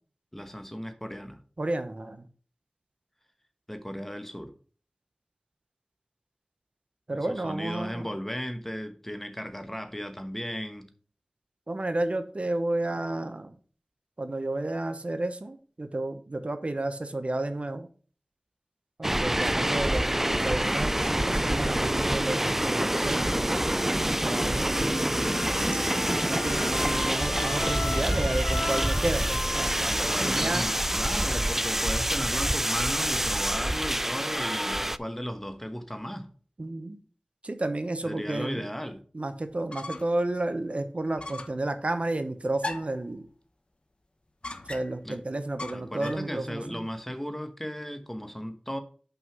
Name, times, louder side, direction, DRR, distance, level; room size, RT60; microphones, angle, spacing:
voice 1, 0.3-1.4 3.7-4.5 7.1-10.9 29.9-36.3 38.0-39.0 45.0-45.2 45.7-48.8, equal, 10° left, 1.1 m, -36 dB
voice 2, 1.6-2.2 7.1-8.1 11.7-13.6 14.2-17.9 19.0-23.6 24.2-25.2 26.3-30.7 36.6-37.0 37.4-38.7 39.1-43.2 44.7-46.9, right 2 dB, 55° right, 0.9 m, -32 dB
sound 1, 19.0-35.0, right 1 dB, 10° right, 0.3 m, -27 dB
Trumpet, 24.9-31.6, left 2 dB, 60° left, 1.4 m, -37 dB
sound 2, 39.5-40.2 40.6-40.7 41.2-41.6 42.6-43.1 44.4-45.1 45.6-46.3, left 2 dB, 45° left, 0.9 m, -38 dB
5.7 x 5.5 x 6.1 m
wide cardioid pair, 50°, 3 cm